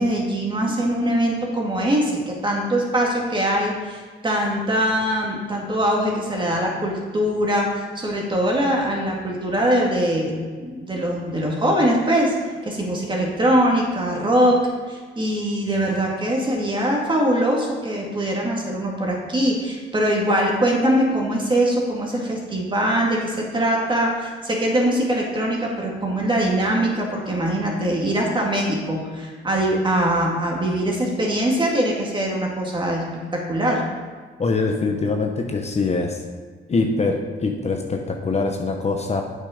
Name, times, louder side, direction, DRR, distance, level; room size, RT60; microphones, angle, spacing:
voice 1, 0.0-10.3 10.6-12.3 12.6-14.6 14.9-33.0 33.3-33.8, right 1 dB, 25° right, -1 dB, 2.2 m, -22 dB
voice 2, 34.4-36.2 36.7-39.2, left 3 dB, 35° left, 3 dB, 0.9 m, -23 dB
8.2 x 5.8 x 5.1 m, 1.5 s
cardioid pair, 90°, 20 cm